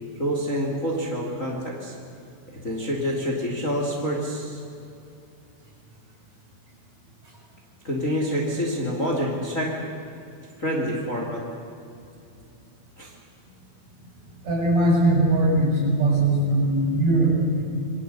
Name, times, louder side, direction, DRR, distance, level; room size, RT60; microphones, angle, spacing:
voice 1, 0.2-1.9 2.6-4.6 7.8-9.7 10.6-11.4 13.0-13.1, equal, 25° left, -1 dB, 3.1 m, -27 dB
voice 2, 14.4-17.6, right 1 dB, 50° right, -3 dB, 8.2 m, -20 dB
27.5 x 22.5 x 8.3 m, 2.6 s
omnidirectional pair, 4.1 m